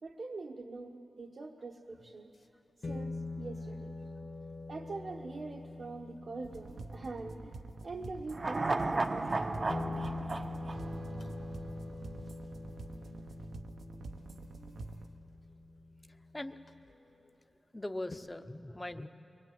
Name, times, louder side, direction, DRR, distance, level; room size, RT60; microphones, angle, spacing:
voice 1, 0.0-2.3 2.9-3.9 4.7-7.5 7.8-9.7, right 3 dB, 55° right, 1 dB, 1.0 m, -43 dB
sound 1, 2.0-2.1 2.8-7.9 9.1-9.2 9.7-17.1 18.1-18.2, left 3 dB, 50° left, 1.3 m, -44 dB
sound 2, 6.4-15.1, right 2 dB, 75° right, 0.9 m, -46 dB
sound 3, 8.3-11.7 12.0-12.1, right 2 dB, 35° right, 0.7 m, -34 dB
voice 2, 16.1-16.6 17.7-19.1, left 1 dB, 15° left, 9 dB, 0.7 m, -41 dB
23.0 x 21.0 x 9.3 m, 3.0 s
wide cardioid pair, 115°, 0 cm